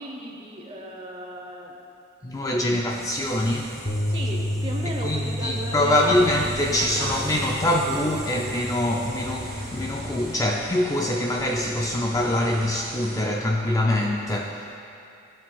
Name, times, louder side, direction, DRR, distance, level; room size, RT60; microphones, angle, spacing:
voice 1, 0.0-1.8 4.1-7.9, right 1 dB, 25° right, 0 dB, 0.8 m, -36 dB
voice 2, 2.2-3.8 5.0-14.7, left 1 dB, 15° left, 0 dB, 0.3 m, -24 dB
sound 1, 2.9-10.4, equal, ahead, 1.2 m, -40 dB
sound 2, 3.9-10.1, equal, 70° left, 0.7 m, -31 dB
sound 3, 6.1-13.2, right 1 dB, 50° right, 1.5 m, -41 dB
16.0 x 5.4 x 2.3 m, 2.7 s
head